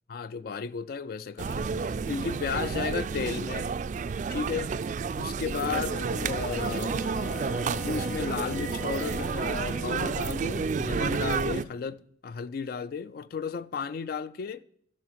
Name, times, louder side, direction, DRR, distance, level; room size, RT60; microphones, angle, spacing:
voice 1, 0.1-3.7 4.3-4.7 5.1-7.0 7.8-14.6, left 5 dB, 55° left, 0.3 m, -34 dB
sound 1, 1.4-11.6, right 5 dB, 40° right, 0.3 m, -30 dB
sound 2, 5.5-10.3, left 5 dB, 85° left, 0.8 m, -41 dB
15.0 x 5.6 x 4.6 m
head